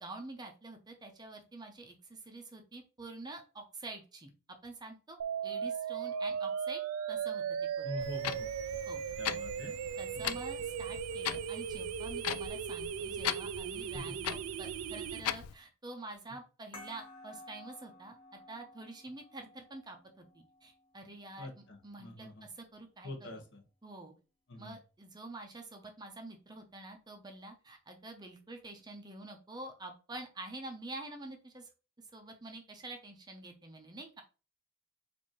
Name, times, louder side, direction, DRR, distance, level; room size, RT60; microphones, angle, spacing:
voice 1, 0.0-4.3 4.6-5.2 5.4-6.8 7.1-7.4 7.8-8.0 8.9-9.1 10.0-18.2 18.5-23.3 23.8-24.1 24.6-31.7 32.0-34.2, right 2 dB, 20° right, 4 dB, 0.6 m, -47 dB
sound 1, 5.2-15.2, right 8 dB, 70° right, 0.3 m, -37 dB
voice 2, 7.8-8.5 9.2-9.7 10.1-10.4 13.9-14.1 21.4-22.5 23.0-23.6 24.5-24.8, left 1 dB, 55° left, 3 dB, 0.9 m, -45 dB
Clock, 8.0-15.5, left 10 dB, 85° left, 0.3 m, -40 dB
sound 2, 16.7-21.8, left 2 dB, 25° left, 1.2 m, -55 dB
4.5 x 2.6 x 2.9 m, 0.33 s
head